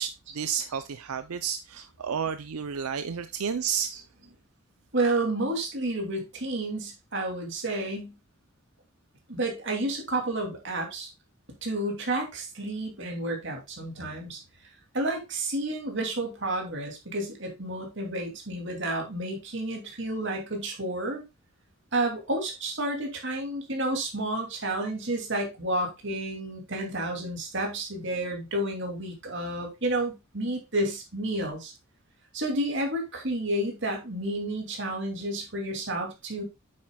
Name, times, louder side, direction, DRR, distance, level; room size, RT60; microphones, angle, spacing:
voice 1, 0.0-4.0, right 7 dB, 90° right, 0.5 m, -31 dB
voice 2, 4.9-8.1 9.3-11.1 11.6-14.4 14.9-21.2 21.9-31.7 32.3-36.4, right 1 dB, 55° right, 2.6 m, -30 dB
8.6 x 7.5 x 2.3 m
head